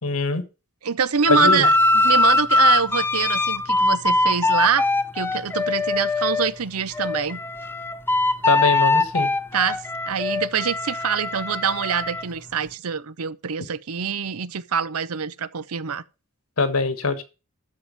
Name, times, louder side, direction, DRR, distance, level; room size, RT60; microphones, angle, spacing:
voice 1, 0.0-0.4 1.3-1.7 8.4-9.3 16.6-17.2, left 3 dB, 75° left, 1.5 m, -22 dB
voice 2, 0.8-4.9 5.1-7.4 9.5-16.0, right 7 dB, 85° right, 0.7 m, -25 dB
sound 1, 1.2-6.5 6.9-12.2, left 2 dB, 10° left, 0.5 m, -21 dB
12.5 x 4.9 x 6.9 m
head